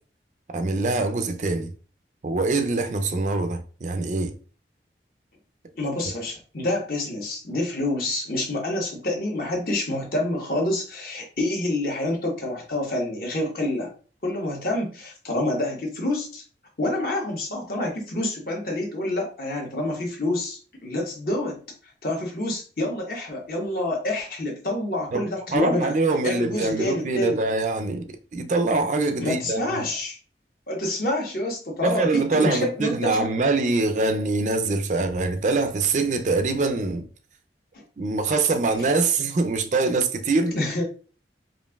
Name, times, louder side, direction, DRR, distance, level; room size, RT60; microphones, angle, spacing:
voice 1, 0.5-1.7 2.2-4.4 25.1-25.2 25.5-29.8 31.8-37.1 38.0-40.6, right 3 dB, 45° right, 0.4 m, -24 dB
voice 2, 5.7-13.9 14.2-16.4 16.8-21.6 22.0-26.0 26.2-27.4 29.2-30.2 30.7-33.3 37.7-37.8 40.5-40.8, left 1 dB, 55° left, 1.2 m, -27 dB
5.2 x 2.6 x 2.3 m
head